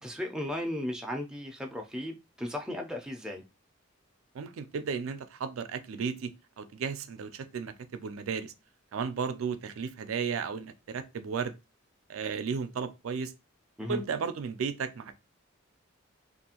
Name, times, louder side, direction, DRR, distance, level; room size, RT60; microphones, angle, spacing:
voice 1, 0.0-3.4 13.8-14.0, left 1 dB, 5° right, 0.4 m, -35 dB
voice 2, 4.3-6.3 6.6-8.5 8.9-11.6 12.1-13.3 13.9-15.1, right 6 dB, 90° right, 0.4 m, -34 dB
2.6 x 2.4 x 2.8 m
head